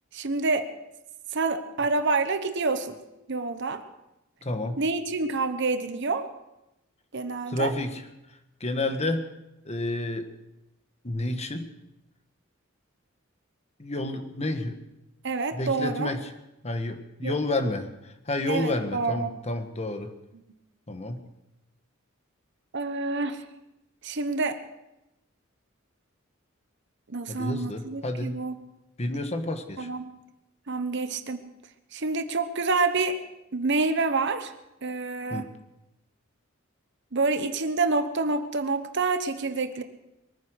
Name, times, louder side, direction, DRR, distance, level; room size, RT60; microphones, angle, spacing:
voice 1, 0.1-0.7 1.3-3.0 3.3-3.8 4.8-6.3 7.1-7.7 15.2-16.1 17.2-17.4 18.5-19.3 22.7-23.4 24.0-24.6 27.1-28.5 29.8-30.1 30.7-31.4 31.9-33.2 33.5-34.5 34.8-35.5 37.1-39.8, right 3 dB, 60° right, 9 dB, 1.2 m, -27 dB
voice 2, 4.4-4.8 7.5-8.0 8.6-9.3 9.6-10.3 11.0-11.7 13.8-14.8 15.5-16.3 16.6-20.1 20.9-21.2 27.3-28.4 29.0-29.9 35.3-35.5, left 2 dB, 35° left, 7 dB, 1.5 m, -30 dB
22.5 x 9.7 x 6.5 m, 0.92 s
head